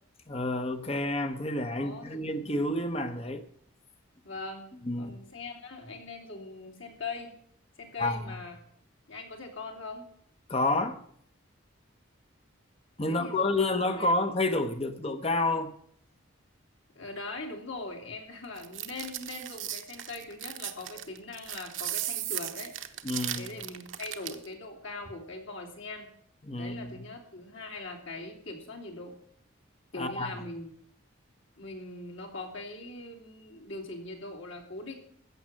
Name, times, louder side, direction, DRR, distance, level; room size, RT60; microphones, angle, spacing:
voice 1, 0.3-3.4 4.8-5.1 8.0-8.4 10.5-11.0 13.0-15.7 23.0-23.5 26.5-27.0 29.9-30.3, left 2 dB, 30° left, 0.9 m, -29 dB
voice 2, 1.8-2.4 4.2-7.3 7.8-8.6 9.1-10.1 13.1-13.6 14.0-14.1 16.9-22.7 23.4-26.1 26.5-29.1 29.9-30.7 31.6-34.9, left 3 dB, 70° left, 3.0 m, -41 dB
sound 1, 18.6-24.5, right 12 dB, 70° right, 1.0 m, -36 dB
15.0 x 7.0 x 7.6 m
head